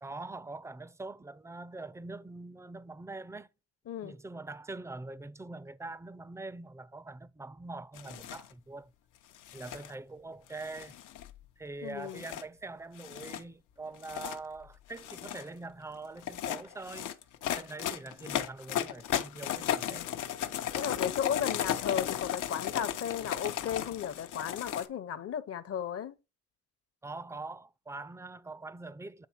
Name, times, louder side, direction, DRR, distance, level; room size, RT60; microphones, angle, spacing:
voice 1, 0.0-3.5 4.0-8.9 9.5-10.9 11.6-17.1 17.6-20.1 27.0-29.3, right 3 dB, 10° right, 0.4 m, -43 dB
sound 1, 8.0-8.5 9.3-9.9 10.6-11.4 12.1-12.4 13.0-13.4 13.9-14.4 14.9-15.5 16.2-24.9, left 10 dB, 85° left, 0.8 m, -35 dB
voice 2, 11.8-12.2 19.8-20.1 20.7-26.2, left 8 dB, 50° left, 0.8 m, -35 dB
8.4 x 3.3 x 4.3 m
cardioid pair, 90°, 30 cm